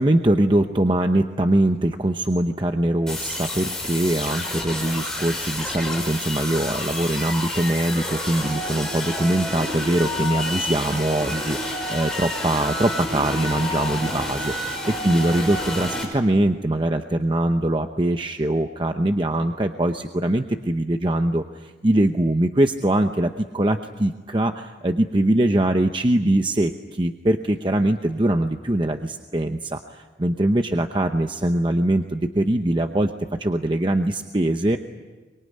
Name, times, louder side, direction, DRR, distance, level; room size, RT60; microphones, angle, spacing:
voice 1, 0.0-33.1 33.4-34.8, right 1 dB, 25° right, 6 dB, 0.8 m, -22 dB
sound 1, 3.1-16.0, left 1 dB, 5° left, 5.4 m, -29 dB
24.5 x 23.5 x 9.6 m, 1.3 s
head